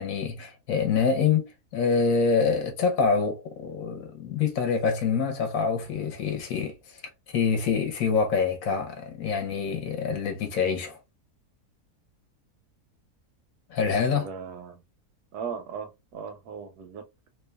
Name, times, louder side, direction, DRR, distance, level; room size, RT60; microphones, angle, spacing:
voice 1, 0.0-7.0 7.3-11.0 13.7-14.3, left 5 dB, 65° left, 1.0 m, -26 dB
voice 2, 14.1-14.8 15.3-17.3, right 6 dB, 90° right, 1.2 m, -38 dB
2.9 x 2.2 x 2.2 m
omnidirectional pair, 1.6 m